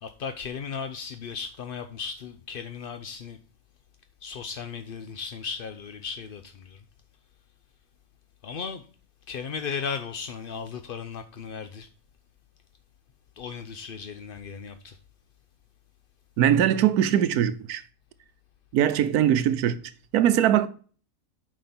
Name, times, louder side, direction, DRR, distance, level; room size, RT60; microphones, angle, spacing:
voice 1, 0.0-3.4 4.2-6.8 8.4-8.8 9.3-11.9 13.4-15.0, left 6 dB, 55° left, 0.6 m, -36 dB
voice 2, 16.4-17.8 18.7-19.8 20.1-20.7, right 10 dB, 85° right, 1.2 m, -21 dB
9.0 x 5.4 x 4.2 m
omnidirectional pair, 1.6 m